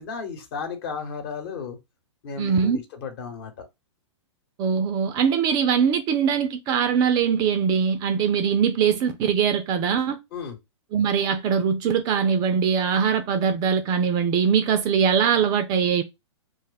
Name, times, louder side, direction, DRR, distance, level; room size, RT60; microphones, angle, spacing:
voice 1, 0.0-1.8 2.2-3.6 10.3-10.6, left 5 dB, 50° left, 1.1 m, -34 dB
voice 2, 2.4-2.8 4.6-10.2 10.9-16.0, right 7 dB, 25° right, 0.3 m, -22 dB
2.5 x 2.2 x 3.9 m
hypercardioid pair, 120°, 16 cm